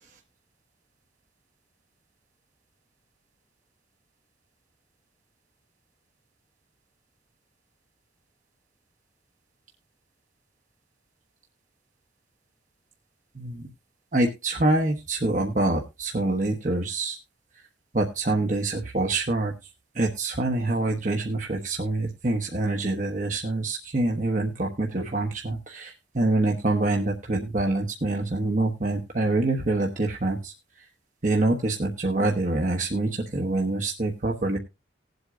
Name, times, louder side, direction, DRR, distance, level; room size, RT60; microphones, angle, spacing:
voice 1, 14.1-17.2 17.9-19.5 20.0-30.5 31.2-34.6, right 2 dB, 40° right, 1 dB, 1.1 m, -25 dB
19.5 x 8.0 x 2.5 m, 0.26 s
head